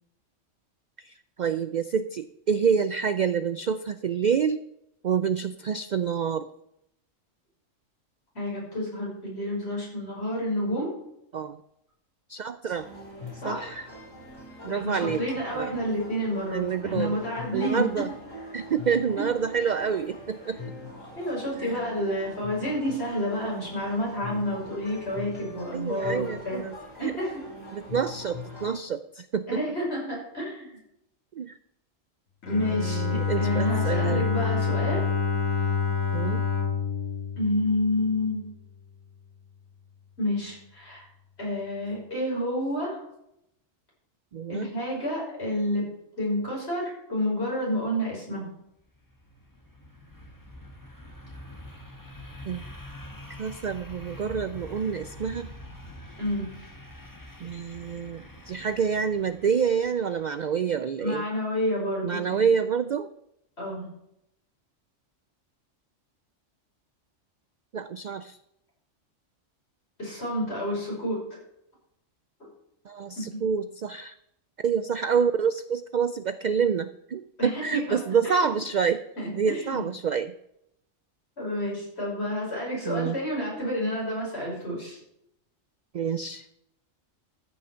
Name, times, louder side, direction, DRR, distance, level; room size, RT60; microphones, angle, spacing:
voice 1, 1.0-4.6 5.0-6.5 11.3-11.6 12.3-12.9 13.4-13.9 14.6-15.2 15.5-15.7 16.5-17.2 17.5-18.1 18.5-20.6 21.6-21.8 25.7-27.1 27.7-29.6 31.4-31.5 32.7-34.3 36.1-36.4 44.3-44.7 52.5-52.6 53.4-55.5 57.4-61.2 62.0-63.1 67.7-68.4 72.9-74.1 74.6-79.0 79.3-80.3 82.8-83.2 85.9-86.5, right 6 dB, 70° right, 12 dB, 0.4 m, -27 dB
voice 2, 8.3-10.9 13.4-13.7 14.7-18.0 19.2-19.3 21.2-26.6 27.0-27.4 29.5-30.8 32.4-35.0 37.4-38.4 40.2-41.0 41.4-43.0 44.5-45.9 46.2-48.5 56.2-56.6 61.0-62.4 63.6-63.9 70.0-71.2 77.4-78.0 78.2-78.5 79.2-79.9 81.4-85.0, left 1 dB, 50° left, -4 dB, 6.1 m, -29 dB
sound 1, 12.7-28.8, left 3 dB, 70° left, 4.8 m, -42 dB
Bowed string instrument, 32.4-38.3, left 5 dB, 90° left, 2.1 m, -27 dB
sound 2, 48.8-60.5, left 1 dB, 15° left, 1.6 m, -45 dB
14.0 x 6.4 x 5.6 m, 0.78 s
omnidirectional pair, 1.3 m